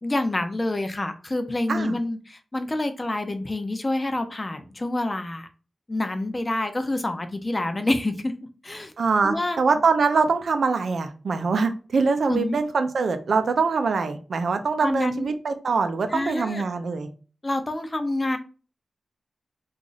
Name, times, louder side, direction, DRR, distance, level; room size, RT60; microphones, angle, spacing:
voice 1, 0.0-5.5 5.9-8.3 8.6-8.9 9.2-9.6 12.3-12.6 14.8-15.3 16.1-16.7 17.4-18.4, left 2 dB, 25° left, 8 dB, 0.5 m, -27 dB
voice 2, 9.0-17.1, right 4 dB, 85° right, 8 dB, 0.5 m, -23 dB
3.0 x 2.5 x 3.9 m, 0.36 s
wide cardioid pair, 130°, 0 cm